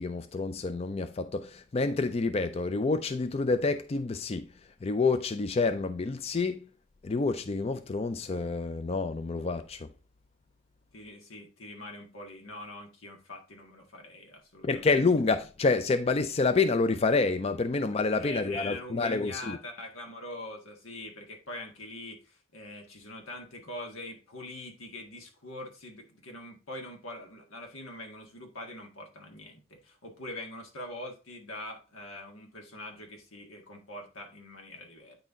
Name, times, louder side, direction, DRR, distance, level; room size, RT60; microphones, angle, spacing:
voice 1, 0.0-4.5 4.8-6.6 7.0-9.9 14.6-19.6, left 3 dB, 30° left, 0.4 m, -28 dB
voice 2, 10.9-14.9 18.1-35.2, left 1 dB, 90° left, 1.8 m, -43 dB
9.0 x 4.1 x 3.7 m
head